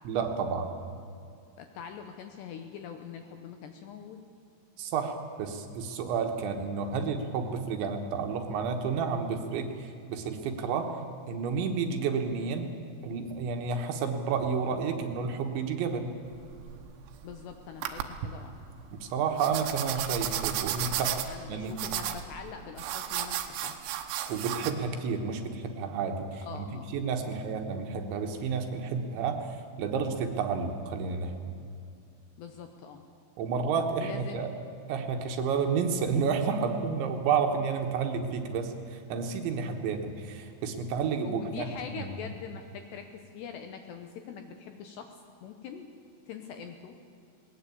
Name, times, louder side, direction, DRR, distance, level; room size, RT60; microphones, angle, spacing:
voice 1, 0.1-0.7 4.8-10.9 11.3-12.7 13.0-16.1 19.0-21.8 24.3-26.7 26.9-31.4 33.4-34.5 34.9-41.7 41.9-42.1, right 5 dB, 70° right, 4 dB, 3.3 m, -31 dB
voice 2, 1.6-4.2 17.2-18.6 21.3-23.8 26.5-26.9 27.3-27.4 32.4-33.0 34.0-34.4 41.2-45.9 46.3-47.0, left 7 dB, 75° left, 6 dB, 2.6 m, -43 dB
sound 1, 16.3-17.3 17.8-18.3 19.4-24.7, right 11 dB, 85° right, 3.8 m, -33 dB
20.0 x 19.0 x 8.5 m, 2.5 s
omnidirectional pair, 6.0 m